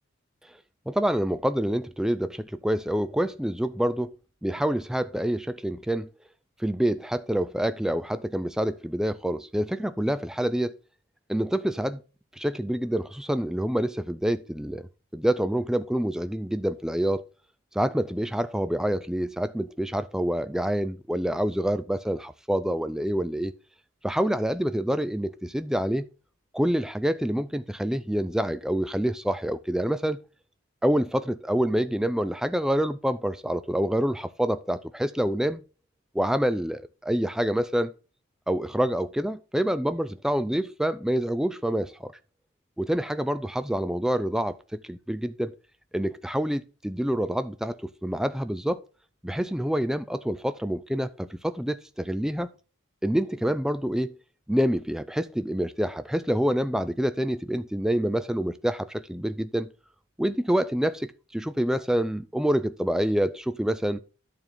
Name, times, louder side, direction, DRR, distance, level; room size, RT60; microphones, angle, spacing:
voice 1, 0.9-4.1 4.4-6.1 6.6-10.7 11.3-12.0 12.3-17.2 17.7-23.5 24.0-26.1 26.5-30.2 30.8-35.6 36.1-37.9 38.5-42.1 42.8-45.5 45.9-48.8 49.2-52.5 53.0-54.2 54.5-59.7 60.2-64.0, equal, 5° right, 0.3 m, -27 dB
11.0 x 4.5 x 5.5 m
head